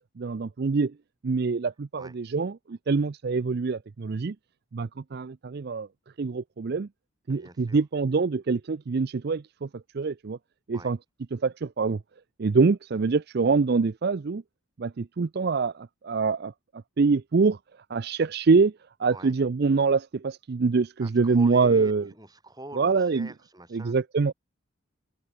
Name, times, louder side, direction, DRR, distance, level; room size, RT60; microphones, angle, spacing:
voice 1, 0.2-0.9 1.2-4.3 4.7-5.9 6.2-6.9 7.3-9.7 9.9-10.4 10.7-11.0 11.3-12.0 12.4-14.4 14.8-16.5 17.0-17.6 17.9-18.7 19.0-22.1 22.7-23.3 23.7-24.3, right 4 dB, 50° right, 0.4 m, -25 dB
voice 2, 7.3-7.8 10.7-10.9 19.1-19.3 21.0-24.0, right 1 dB, 20° right, 5.9 m, -44 dB
open air
head